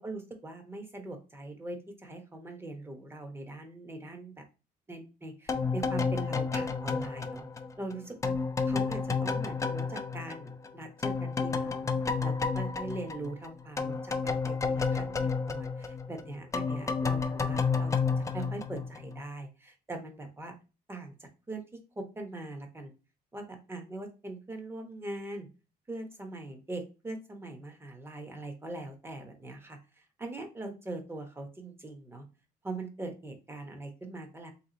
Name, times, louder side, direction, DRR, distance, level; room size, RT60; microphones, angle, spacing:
voice 1, 0.0-4.4 4.9-7.4 7.8-8.3 8.7-11.9 12.2-20.5 20.9-22.9 23.3-25.5 25.9-32.2 32.6-34.5, right 2 dB, 15° right, 4 dB, 1.0 m, -41 dB
sound 1, 5.5-10.7 11.0-19.2, left 5 dB, 20° left, 0.5 m, -31 dB
3.5 x 3.0 x 3.9 m, 0.30 s
cardioid pair, 110°, 17 cm